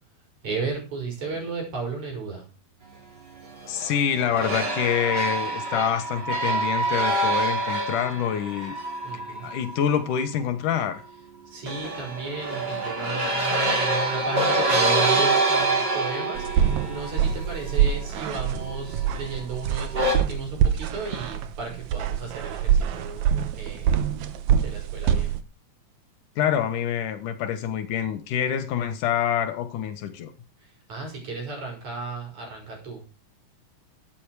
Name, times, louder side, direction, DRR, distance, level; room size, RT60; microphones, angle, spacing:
voice 1, 0.4-2.5 9.0-9.5 11.5-23.3 23.5-24.0 24.6-25.4 30.6-33.2, right 4 dB, 45° right, 7.0 m, -34 dB
sound 1, 3.4-10.2 11.7-19.2 19.9-20.2, right 2 dB, 30° right, 3.0 m, -26 dB
voice 2, 3.7-8.7 9.4-11.0 26.4-30.3, left 9 dB, 65° left, 2.5 m, -26 dB
sound 2, 16.4-25.4, right 9 dB, 70° right, 1.7 m, -25 dB
12.5 x 10.5 x 4.8 m
omnidirectional pair, 4.5 m